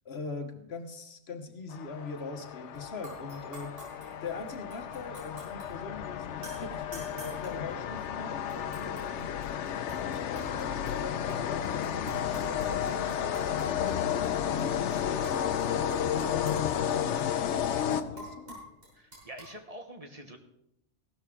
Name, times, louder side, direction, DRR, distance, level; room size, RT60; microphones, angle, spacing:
voice 1, 0.0-3.9 4.2-14.2 14.6-18.6, left 4 dB, 65° left, 7 dB, 1.4 m, -42 dB
sound 1, 1.7-18.5, left 9 dB, 85° left, 1.0 m, -32 dB
sound 2, 2.7-2.8 3.0-5.7 6.4-8.1 8.5-11.0 11.3-13.9 14.2-14.3 14.6-15.6 15.9-19.5, equal, 55° right, 5.7 m, -47 dB
voice 2, 19.0-20.4, right 1 dB, 35° right, 5 dB, 1.2 m, -45 dB
15.5 x 13.0 x 3.7 m, 0.82 s
omnidirectional pair, 1.2 m